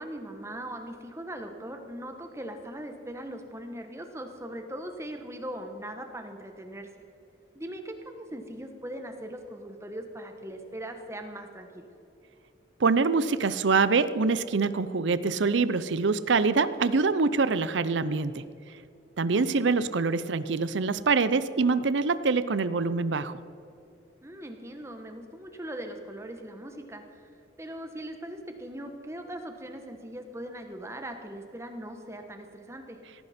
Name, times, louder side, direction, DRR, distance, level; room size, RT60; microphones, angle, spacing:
voice 1, 0.0-6.9 7.5-11.9 19.3-19.7 24.2-27.3 27.6-33.0, right 1 dB, 15° right, 5 dB, 1.1 m, -40 dB
voice 2, 12.8-18.4 19.2-23.4, right 4 dB, 80° right, 14 dB, 0.6 m, -25 dB
17.5 x 15.0 x 4.3 m, 2.7 s
head